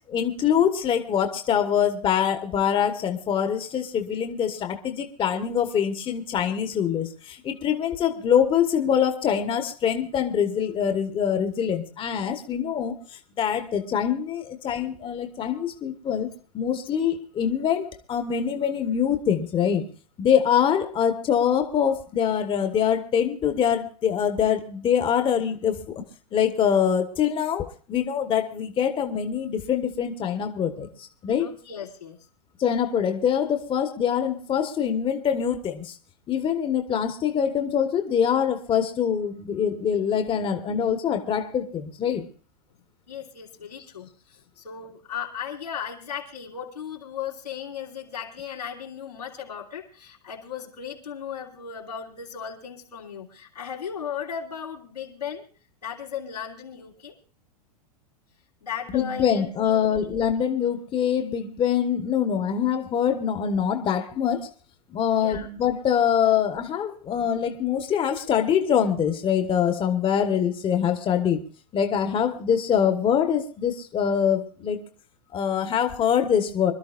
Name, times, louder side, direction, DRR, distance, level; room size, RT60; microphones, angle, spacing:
voice 1, 0.1-12.9 13.4-19.8 20.2-25.9 26.3-30.9 31.2-31.5 32.6-35.9 36.3-42.2 58.9-64.5 64.9-71.4 71.7-74.8 75.3-76.7, left 8 dB, 25° left, 6 dB, 1.4 m, -24 dB
voice 2, 31.4-32.2 42.7-55.4 55.8-57.1 58.6-60.0 65.1-65.5, left 8 dB, 90° left, -3 dB, 3.3 m, -36 dB
25.5 x 12.5 x 2.5 m, 0.38 s
hypercardioid pair, 105°, 20 cm